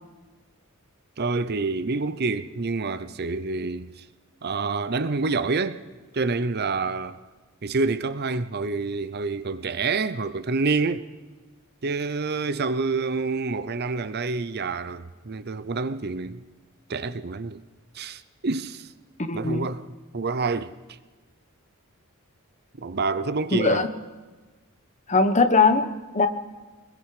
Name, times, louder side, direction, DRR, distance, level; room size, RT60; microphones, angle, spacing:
voice 1, 1.2-4.0 4.4-5.8 6.1-7.2 7.6-11.1 11.8-16.4 16.9-17.6 17.9-18.9 19.3-20.7 22.8-23.9, right 4 dB, 50° right, 0.7 m, -27 dB
voice 2, 19.3-19.7 23.5-23.9 25.1-26.3, left 3 dB, 35° left, 1.2 m, -20 dB
24.5 x 21.5 x 5.0 m
head